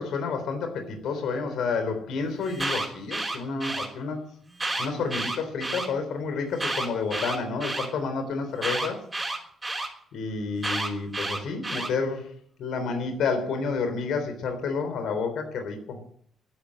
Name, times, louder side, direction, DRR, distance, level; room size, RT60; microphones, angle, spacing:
voice 1, 0.0-4.2 4.8-9.0 10.1-12.3 12.6-16.0, left 4 dB, 75° left, 7 dB, 3.7 m, -30 dB
Alarm, 2.4-3.9 4.5-5.9 6.5-7.9 8.6-9.9 10.6-11.9, right 2 dB, 20° right, 5.3 m, -30 dB
13.0 x 11.5 x 8.9 m, 0.62 s
cardioid pair, 90°, 0 cm